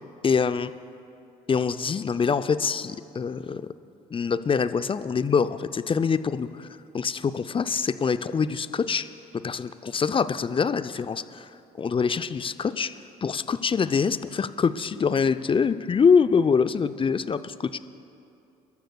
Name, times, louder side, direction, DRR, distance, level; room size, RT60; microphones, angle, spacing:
voice 1, 0.2-0.7 1.5-3.6 4.1-6.7 6.9-9.1 9.4-11.5 11.8-13.0 13.2-17.8, left 6 dB, 30° left, 13 dB, 0.5 m, -24 dB
29.0 x 12.5 x 2.3 m, 2.7 s
hypercardioid pair, 45°, 19 cm